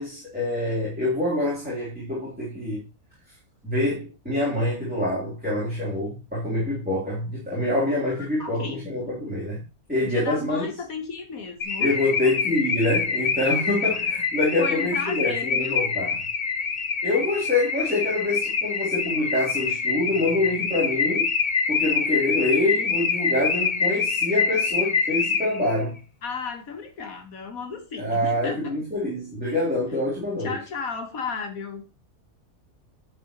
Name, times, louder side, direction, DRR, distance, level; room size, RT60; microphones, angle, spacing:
voice 1, 0.0-2.8 3.6-9.6 9.9-10.7 11.8-16.2 17.0-21.3 21.7-26.0 28.0-30.5, left 1 dB, 5° right, 3.5 m, -26 dB
voice 2, 8.4-8.8 10.0-12.3 14.6-15.9 26.2-28.7 29.4-29.5 30.4-31.8, left 5 dB, 75° left, 2.0 m, -34 dB
Car / Alarm, 11.6-25.8, left 5 dB, 35° left, 1.0 m, -26 dB
10.5 x 6.6 x 3.1 m
omnidirectional pair, 1.5 m